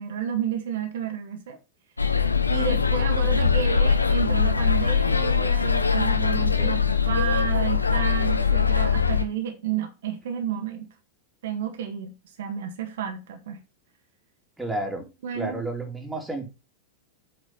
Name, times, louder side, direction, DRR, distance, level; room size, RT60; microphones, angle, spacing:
voice 1, 0.0-1.6 2.5-10.9 11.4-13.6 15.2-15.6, right 8 dB, 60° right, 1.7 m, -31 dB
sound 1, 2.0-9.2, left 6 dB, 80° left, 0.8 m, -22 dB
voice 2, 14.6-15.0 15.3-16.5, right 2 dB, 5° right, 2.8 m, -31 dB
8.1 x 5.2 x 5.6 m
figure-of-eight pair, 90°, 0 cm